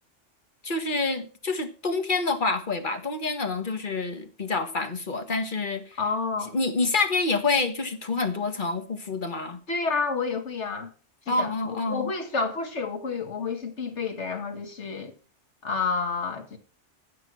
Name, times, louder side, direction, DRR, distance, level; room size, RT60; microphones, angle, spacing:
voice 1, 0.6-6.0 6.5-9.6 11.3-12.1, left 3 dB, 45° left, 1.7 m, -27 dB
voice 2, 6.0-6.5 9.7-10.9 11.3-15.1 15.6-16.6, left 4 dB, 70° left, 2.2 m, -29 dB
16.5 x 6.0 x 6.2 m
omnidirectional pair, 1.2 m